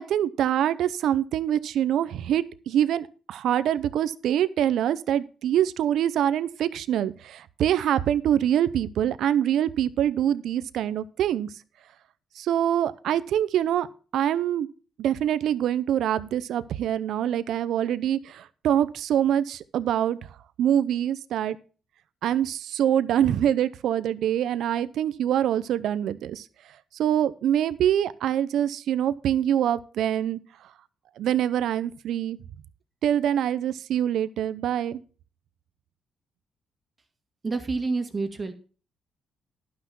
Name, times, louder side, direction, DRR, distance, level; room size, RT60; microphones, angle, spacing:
voice 1, 0.0-11.5 12.4-13.9 14.1-14.7 15.0-20.2 20.6-21.6 22.2-26.4 26.9-30.4 31.2-32.4 33.0-35.0, right 10 dB, 75° right, 15 dB, 0.6 m, -25 dB
voice 2, 37.4-38.5, right 3 dB, 30° right, 6 dB, 1.8 m, -28 dB
11.5 x 6.0 x 5.9 m, 0.38 s
cardioid pair, 90°, 0 cm